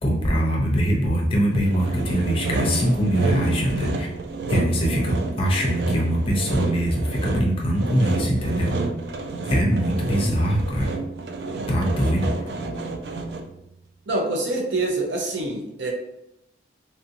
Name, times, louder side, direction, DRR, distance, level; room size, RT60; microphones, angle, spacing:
voice 1, 0.0-4.1 4.5-8.7 9.5-10.9 11.7-12.3, equal, 30° left, -2 dB, 0.6 m, -22 dB
Sawing, 1.6-13.6, right 2 dB, 65° right, 0.3 m, -29 dB
voice 2, 14.1-15.9, right 2 dB, 85° right, 1 dB, 0.7 m, -25 dB
3.3 x 2.6 x 2.7 m, 0.85 s
head